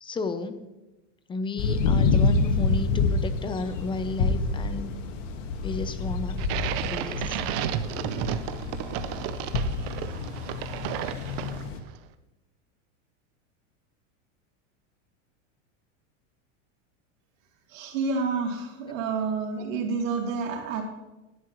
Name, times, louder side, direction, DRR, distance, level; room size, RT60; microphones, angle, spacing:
voice 1, 0.0-0.6 1.3-4.9 5.6-6.4 6.8-7.4, left 3 dB, 15° left, 11 dB, 0.6 m, -32 dB
sound 1, 1.6-11.8, left 4 dB, 75° left, 1.7 m, -28 dB
sound 2, 6.4-11.9, right 11 dB, 50° right, 0.8 m, -32 dB
voice 2, 17.7-20.8, right 4 dB, 85° right, 1 dB, 3.1 m, -29 dB
17.5 x 11.0 x 3.1 m, 1.0 s
supercardioid pair, 145°, 38 cm